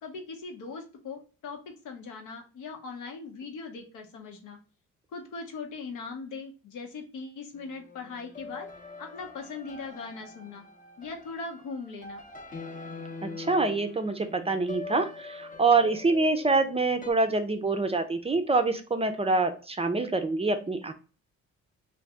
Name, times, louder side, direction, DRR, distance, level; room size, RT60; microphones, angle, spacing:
voice 1, 0.0-4.6 5.1-8.7 9.0-10.6 11.0-12.2, left 4 dB, 80° left, 3 dB, 0.9 m, -40 dB
sound 1, 7.5-17.1, left 3 dB, 25° left, 0.7 m, -44 dB
voice 2, 13.2-20.9, right 3 dB, 20° right, 7 dB, 0.4 m, -26 dB
2.6 x 2.6 x 3.2 m, 0.36 s
cardioid pair, 90°, 30 cm